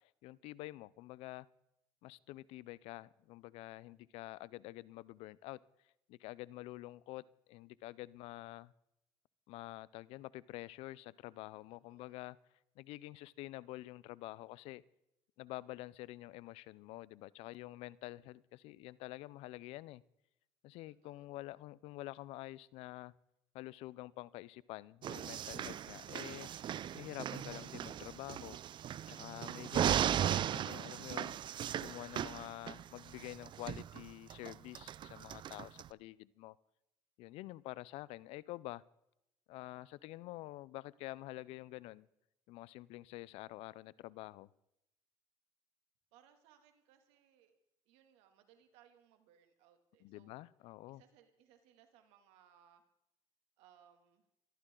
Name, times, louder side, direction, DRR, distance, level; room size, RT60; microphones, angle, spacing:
voice 1, 0.0-1.5 2.0-5.6 6.1-8.7 9.5-12.4 12.8-14.8 15.4-20.0 20.6-23.1 23.5-26.5 26.9-28.6 29.1-31.4 31.8-36.6 37.2-38.8 39.5-42.1 42.5-44.5 50.0-51.0, left 18 dB, 80° left, 21 dB, 0.5 m, -48 dB
voice 2, 11.9-12.3 20.9-21.3 46.1-47.6 47.9-50.4 50.9-52.8 53.6-54.3, right 9 dB, 85° right, 6 dB, 2.5 m, -67 dB
sound 1, 25.0-35.9, right 10 dB, 50° right, 0.5 m, -37 dB
23.5 x 14.0 x 3.9 m, 0.83 s
supercardioid pair, 85°, 10 cm